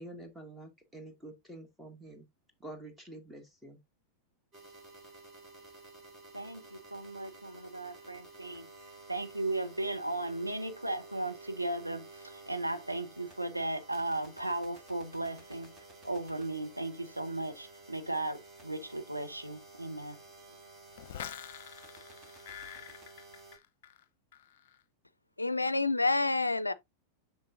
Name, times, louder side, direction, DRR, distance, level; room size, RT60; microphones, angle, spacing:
voice 1, 0.0-2.2 2.6-3.8, right 1 dB, 5° right, 1.8 m, -47 dB
sound 1, 4.5-23.6, right 2 dB, 20° right, 2.6 m, -53 dB
voice 2, 6.3-8.7 9.1-15.7 16.0-20.2, right 2 dB, 85° right, 1.0 m, -36 dB
sound 2, 21.0-24.0 24.3-24.8, left 10 dB, 50° left, 0.8 m, -46 dB
voice 3, 25.4-26.7, left 3 dB, 85° left, 0.4 m, -28 dB
7.4 x 6.3 x 2.6 m
figure-of-eight pair, 90°, 0 cm